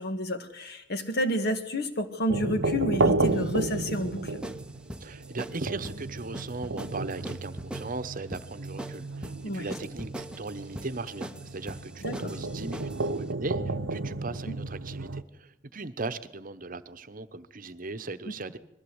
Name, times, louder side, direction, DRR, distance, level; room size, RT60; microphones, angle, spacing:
voice 1, 0.0-4.4 9.4-9.7 12.0-12.3 14.5-14.6, equal, 55° left, 8 dB, 2.0 m, -30 dB
sound 1, 2.3-15.2, right 2 dB, 75° right, 0.8 m, -32 dB
sound 2, 3.2-13.1, right 1 dB, 5° right, 0.8 m, -42 dB
voice 2, 5.0-18.6, right 3 dB, 45° right, 12 dB, 1.0 m, -38 dB
21.5 x 15.0 x 8.0 m, 0.86 s
head